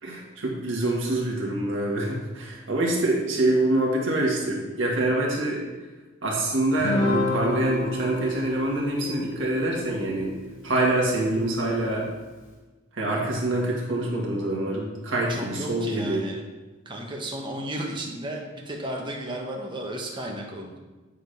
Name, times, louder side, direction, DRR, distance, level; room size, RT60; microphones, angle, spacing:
voice 1, 0.0-5.6 6.2-10.3 10.6-12.1 12.9-16.2, right 1 dB, 65° right, -2 dB, 1.7 m, -25 dB
Guitar, 6.8-11.4, left 2 dB, 90° left, 2.2 m, -30 dB
voice 2, 15.3-16.4 16.8-20.8, right 1 dB, 25° right, 0 dB, 1.1 m, -34 dB
8.3 x 3.8 x 5.1 m, 1.2 s
head